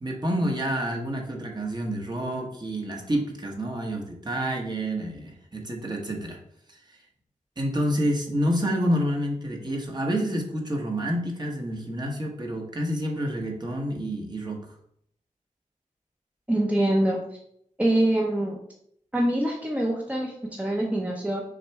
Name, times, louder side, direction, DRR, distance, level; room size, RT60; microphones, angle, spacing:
voice 1, 0.0-6.4 7.6-14.6, equal, 35° right, 1 dB, 1.3 m, -28 dB
voice 2, 16.5-17.4 17.8-18.6 19.1-21.4, right 1 dB, 10° right, -1 dB, 0.9 m, -24 dB
6.4 x 3.3 x 4.7 m, 0.70 s
wide cardioid pair, 100°, 13 cm